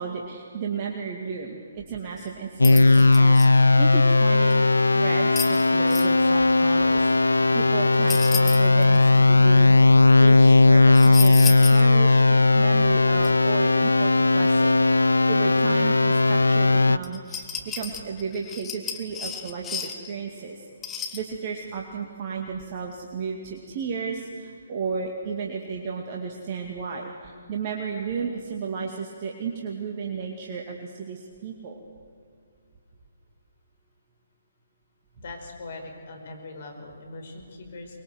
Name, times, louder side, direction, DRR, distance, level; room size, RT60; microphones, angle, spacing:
voice 1, 0.0-4.7 4.9-14.8 15.3-20.7 21.1-31.8, right 5 dB, 35° right, 0 dB, 2.4 m, -33 dB
sound 1, 2.2-2.3 2.6-3.5 4.5-4.6 5.4-6.1 8.1-9.0 10.9-11.8 12.2-12.3 13.2-13.3 17.0-20.1 20.8-21.2, left 7 dB, 15° left, 1.8 m, -33 dB
sound 2, 2.6-17.0, left 3 dB, 80° left, 0.5 m, -17 dB
voice 2, 35.2-38.0, left 2 dB, 50° left, 3 dB, 5.3 m, -41 dB
24.0 x 22.0 x 8.0 m, 2.3 s
figure-of-eight pair, 135°, 0 cm